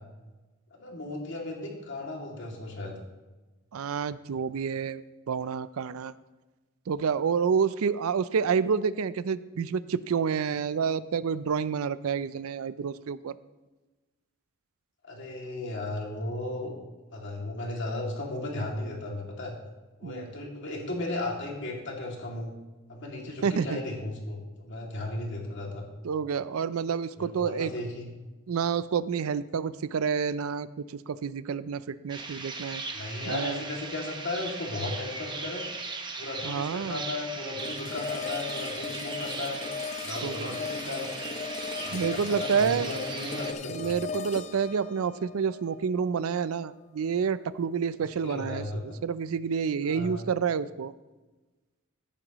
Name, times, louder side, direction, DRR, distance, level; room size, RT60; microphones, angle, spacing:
voice 1, 0.8-3.0 15.0-16.7 17.1-19.5 20.0-22.5 22.9-25.8 27.2-28.1 32.9-35.6 36.2-39.6 40.0-41.1 41.8-44.0 48.2-49.0 49.8-50.3, left 2 dB, 60° left, -1 dB, 2.4 m, -35 dB
voice 2, 3.7-6.1 6.9-13.4 20.0-20.3 23.4-23.8 26.0-27.7 28.5-32.8 33.3-33.6 36.4-37.0 40.2-40.6 41.9-43.0 43.7-50.9, right 6 dB, 85° right, 16 dB, 0.4 m, -29 dB
sound 1, 32.1-43.5, right 3 dB, 20° right, 1.0 m, -38 dB
sound 2, 37.6-46.6, left 6 dB, 35° left, 0.5 m, -38 dB
14.5 x 10.0 x 3.0 m, 1.2 s
head